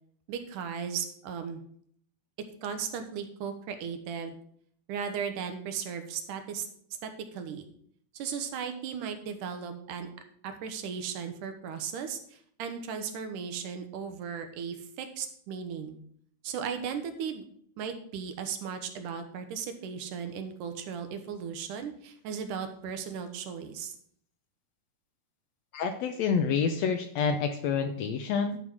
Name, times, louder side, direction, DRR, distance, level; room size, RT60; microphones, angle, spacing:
voice 1, 0.3-1.6 2.4-4.4 4.9-6.7 7.0-7.7 8.1-10.1 10.4-16.0 16.4-17.4 17.8-24.0, right 7 dB, 85° right, 7 dB, 2.6 m, -36 dB
voice 2, 25.7-28.6, left 6 dB, 75° left, 7 dB, 1.6 m, -28 dB
11.5 x 4.8 x 6.0 m, 0.63 s
omnidirectional pair, 3.6 m